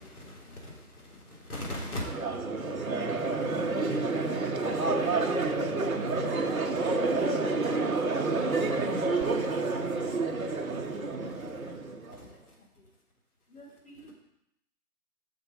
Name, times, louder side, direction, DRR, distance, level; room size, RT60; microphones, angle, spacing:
voice 1, 0.0-2.4 2.7-5.7 6.0-6.4 6.7-7.4 8.1-8.2 8.6-10.0 11.2-11.8 12.1-12.9 13.5-14.1, left 1 dB, 65° left, -2 dB, 3.3 m, -45 dB
Crowd, 2.0-12.2, right 3 dB, 60° right, 1.1 m, -29 dB
7.9 x 6.4 x 5.1 m, 0.80 s
figure-of-eight pair, 170°, 48 cm